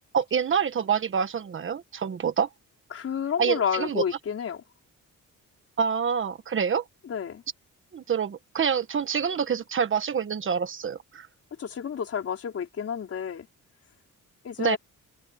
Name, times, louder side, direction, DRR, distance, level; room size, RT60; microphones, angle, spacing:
voice 1, 0.1-2.5 3.4-4.0 5.8-6.8 7.9-11.3 14.6-14.8, right 7 dB, 40° right, 1.5 m, -26 dB
voice 2, 2.9-4.6 7.0-7.4 11.6-13.5 14.4-14.8, left 7 dB, 45° left, 4.5 m, -30 dB
cardioid pair, 165°, 32 cm